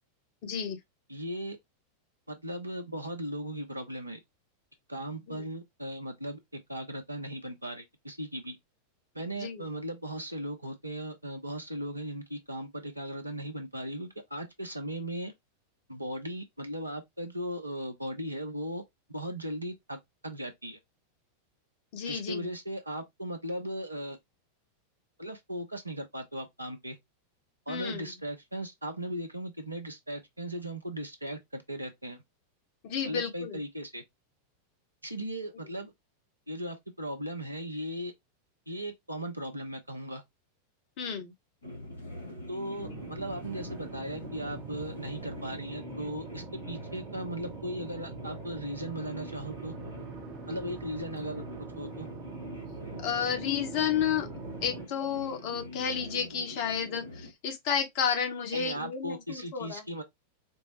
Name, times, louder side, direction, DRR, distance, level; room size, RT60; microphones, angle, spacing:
voice 1, 0.4-0.8 5.3-5.4 9.4-9.6 21.9-22.5 27.7-28.1 32.8-33.6 41.0-41.3 53.0-54.3 54.6-59.8, left 7 dB, 45° left, 0.9 m, -31 dB
voice 2, 1.1-1.6 2.3-4.2 4.9-8.6 9.1-15.3 15.9-18.8 19.1-20.8 22.1-24.2 25.2-27.0 27.7-32.2 33.1-34.0 35.0-35.9 36.5-38.1 38.7-40.2 42.5-49.7 50.5-51.4 51.8-52.1 58.5-60.0, right 1 dB, 85° right, 0.8 m, -37 dB
sound 1, 41.6-57.3, left 1 dB, 80° left, 1.3 m, -44 dB
sound 2, 42.8-54.9, right 6 dB, 35° right, 0.8 m, -44 dB
4.4 x 2.0 x 3.0 m
figure-of-eight pair, 90°, 0 cm